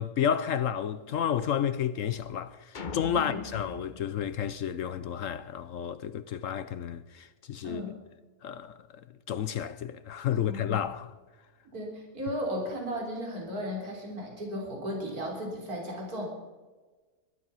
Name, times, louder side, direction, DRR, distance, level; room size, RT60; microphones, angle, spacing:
voice 1, 0.0-7.8 8.4-8.8 9.3-11.1, left 9 dB, 65° left, 1.0 m, -31 dB
sound 1, 2.7-5.2, left 5 dB, 40° left, 0.9 m, -41 dB
voice 2, 7.6-8.0 10.4-10.8 11.7-16.3, equal, 80° right, 4.1 m, -35 dB
21.5 x 12.0 x 5.6 m
omnidirectional pair, 1.6 m